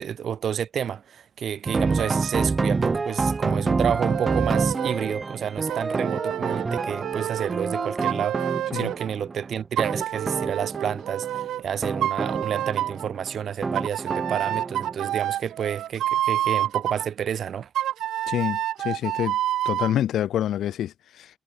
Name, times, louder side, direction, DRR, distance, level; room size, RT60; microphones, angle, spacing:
voice 1, 0.0-17.7, right 8 dB, 55° right, 2.9 m, -30 dB
sound 1, 1.7-15.2, right 4 dB, 25° right, 0.9 m, -28 dB
sound 2, 4.1-5.1 5.7-9.1 9.8-11.6 12.0-13.1 13.8-17.1 17.8-20.0, right 12 dB, 85° right, 0.6 m, -28 dB
voice 2, 18.3-19.4 19.7-21.3, left 11 dB, 75° left, 2.2 m, -27 dB
cardioid pair, 145°, 0 cm